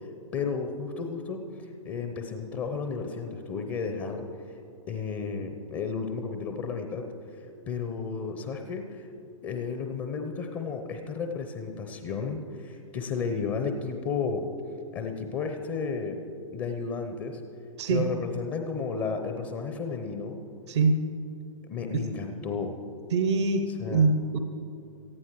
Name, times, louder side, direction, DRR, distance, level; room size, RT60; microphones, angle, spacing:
voice 1, 0.3-1.4 1.8-4.3 4.9-7.1 7.7-9.1 9.4-14.5 14.9-16.2 16.5-17.4 17.9-20.4 21.7-22.7 23.7-24.1, left 5 dB, 30° left, 5 dB, 0.8 m, -33 dB
voice 2, 23.1-23.6 23.9-24.4, right 4 dB, 55° right, 7 dB, 0.8 m, -23 dB
18.5 x 14.5 x 3.1 m, 2.6 s
figure-of-eight pair, 105°, 17 cm